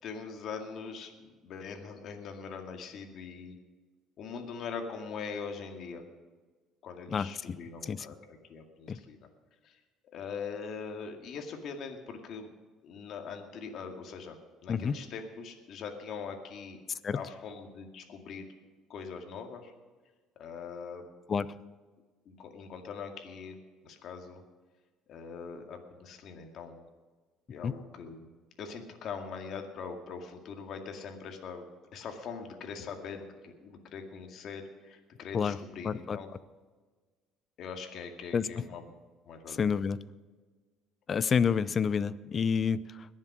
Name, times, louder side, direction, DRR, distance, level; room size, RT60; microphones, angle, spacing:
voice 1, 0.0-3.6 4.2-6.1 6.8-9.3 9.6-9.8 10.1-12.5 12.8-14.4 14.6-16.8 17.1-18.5 18.9-19.7 20.4-21.0 22.3-23.6 23.8-24.4 25.1-26.9 27.5-28.3 28.6-31.7 31.9-36.3 37.6-38.8 39.3-39.7, left 5 dB, 55° left, 4 dB, 2.1 m, -42 dB
voice 2, 7.1-7.6 7.8-8.1 8.9-9.0 14.7-15.0 17.0-17.2 21.3-21.5 27.6-27.7 35.3-35.6 35.8-36.2 38.3-38.7 39.5-40.0 41.1-43.1, left 6 dB, 35° left, 17 dB, 0.6 m, -29 dB
21.0 x 7.5 x 6.2 m, 1.4 s
cardioid pair, 120°, 0 cm